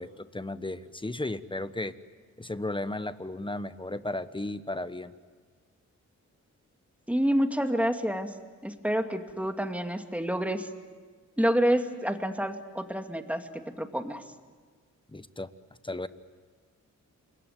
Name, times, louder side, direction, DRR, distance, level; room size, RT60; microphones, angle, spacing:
voice 1, 0.0-1.9 2.4-5.1 15.1-15.5 15.8-16.1, left 2 dB, 15° left, 12 dB, 1.2 m, -34 dB
voice 2, 7.1-8.3 8.6-10.7 11.4-14.2, equal, 5° right, 5 dB, 2.4 m, -28 dB
28.5 x 22.0 x 9.4 m, 1.5 s
cardioid pair, 75°, 30 cm